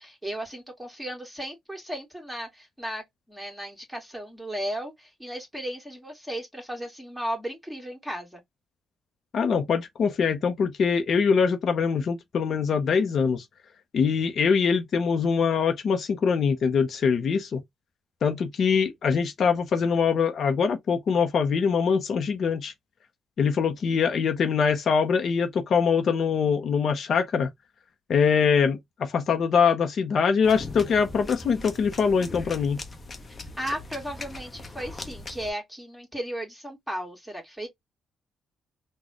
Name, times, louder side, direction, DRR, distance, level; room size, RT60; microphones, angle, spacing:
voice 1, 0.0-8.4 33.6-37.7, equal, 5° right, 2.0 m, -35 dB
voice 2, 9.3-13.4 13.9-17.6 18.2-22.7 23.4-27.5 28.1-32.8, left 6 dB, 55° left, 0.7 m, -23 dB
sound 1, 30.4-35.5, left 2 dB, 25° left, 1.0 m, -40 dB
4.0 x 2.3 x 3.0 m
cardioid pair, 90°, 0 cm